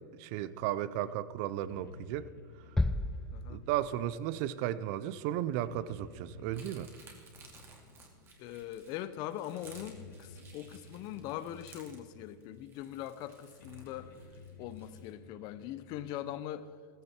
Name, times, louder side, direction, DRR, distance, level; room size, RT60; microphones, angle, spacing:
voice 1, 0.2-2.3 3.5-6.9, right 12 dB, 45° right, 16 dB, 0.7 m, -34 dB
sound 1, 0.7-16.3, left 3 dB, 85° left, 3.7 m, -55 dB
sound 2, 2.8-4.2, left 2 dB, 5° left, 0.4 m, -33 dB
sound 3, 6.5-15.1, right 4 dB, 25° right, 2.5 m, -57 dB
voice 2, 8.4-14.2 14.6-16.7, left 12 dB, 40° left, 13 dB, 0.9 m, -41 dB
15.0 x 15.0 x 4.5 m, 2.1 s
supercardioid pair, 140°, 11 cm